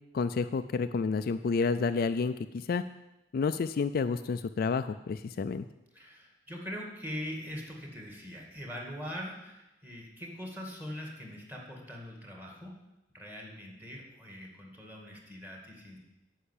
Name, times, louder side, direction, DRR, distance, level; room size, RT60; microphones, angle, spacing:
voice 1, 0.1-2.8 3.3-5.7, left 4 dB, 50° left, 10 dB, 0.4 m, -30 dB
voice 2, 5.9-12.8 13.1-16.0, equal, 10° right, -1 dB, 2.1 m, -42 dB
10.0 x 5.7 x 8.4 m, 0.96 s
head